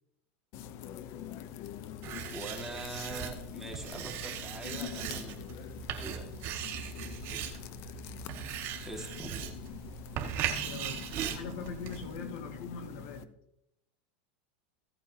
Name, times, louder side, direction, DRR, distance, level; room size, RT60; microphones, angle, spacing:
sound 1, 0.5-13.2, left 9 dB, 50° left, 0.7 m, -45 dB
Writing, 2.0-12.2, right 9 dB, 50° right, 1.9 m, -39 dB
voice 1, 2.3-5.3 5.9-6.4 8.8-9.4 11.3-11.5, right 2 dB, 5° right, 1 dB, 2.0 m, -43 dB
voice 2, 10.3-13.3, left 4 dB, 70° left, 4 dB, 2.1 m, -42 dB
16.0 x 8.9 x 2.8 m, 0.80 s
supercardioid pair, 120°, 6 cm